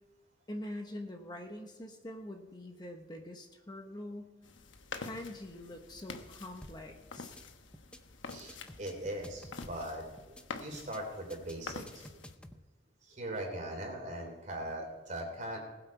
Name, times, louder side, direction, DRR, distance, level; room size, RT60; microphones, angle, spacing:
voice 1, 0.5-4.4 4.9-7.4, left 1 dB, 25° left, 4 dB, 1.1 m, -44 dB
sound 1, 4.4-12.4, left 4 dB, 90° left, 1.1 m, -47 dB
sound 2, 6.6-6.9 7.2-7.4 7.7-8.0 8.3-9.9 10.2-10.4 10.7-11.0 11.3-12.6, left 1 dB, 5° left, 0.7 m, -51 dB
voice 2, 8.3-12.2 13.0-15.6, right 1 dB, 40° right, 1 dB, 3.6 m, -40 dB
20.0 x 8.1 x 4.6 m, 1.2 s
head